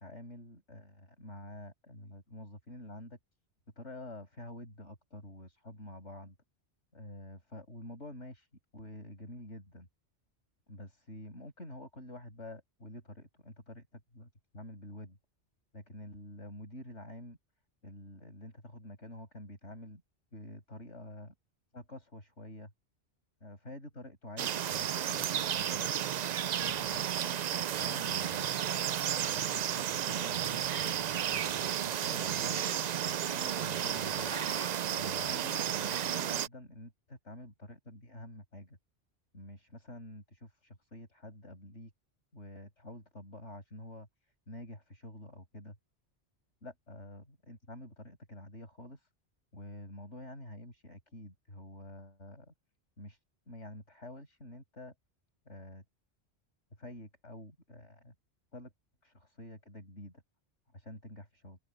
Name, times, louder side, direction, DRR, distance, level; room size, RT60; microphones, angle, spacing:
voice 1, 0.0-3.2 3.8-6.4 6.9-8.5 8.7-9.9 10.7-14.3 14.5-15.2 15.7-17.4 17.8-20.0 20.3-21.3 21.7-22.7 23.4-25.9 26.6-28.6 29.3-31.6 32.0-34.3 35.0-38.8 39.3-41.9 42.3-44.1 44.5-45.8 46.6-49.1 49.5-52.5 53.0-53.2 53.5-54.9 55.5-55.8 56.7-58.1 58.5-58.7 59.0-60.2 60.7-61.6, left 1 dB, 75° left, 7.7 m, -48 dB
sound 1, 24.4-36.5, right 9 dB, 60° right, 0.4 m, -33 dB
Growling, 28.9-30.0 30.3-31.7 32.6-33.6 34.0-35.0, equal, 5° left, 2.3 m, -50 dB
open air
omnidirectional pair, 1.2 m